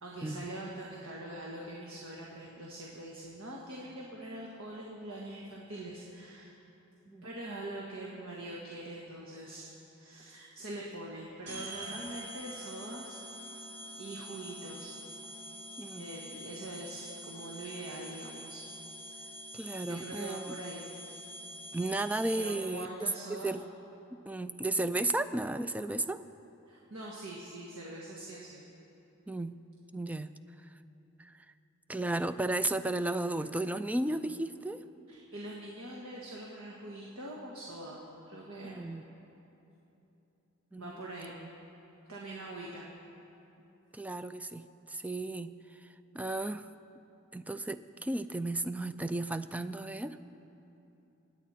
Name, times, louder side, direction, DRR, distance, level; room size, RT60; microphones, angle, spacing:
voice 1, 0.0-6.5 7.2-13.2 14.0-15.0 15.2-15.3 15.9-18.7 19.0-19.4 19.8-20.9 22.4-23.5 26.7-28.6 35.1-38.9 40.8-41.4 42.1-42.9, right 1 dB, 75° right, -3 dB, 1.6 m, -43 dB
sound 1, 11.5-22.9, equal, 55° right, 1.9 m, -46 dB
voice 2, 15.8-16.1 19.5-20.5 21.7-22.9 23.3-23.6 24.3-26.2 29.3-29.6 29.9-30.3 31.2-31.3 31.9-34.8 38.6-39.1 40.7-40.9 43.9-45.5 46.1-46.7 47.3-50.2, right 2 dB, 5° right, 12 dB, 0.3 m, -34 dB
26.5 x 9.2 x 4.3 m, 2.9 s
head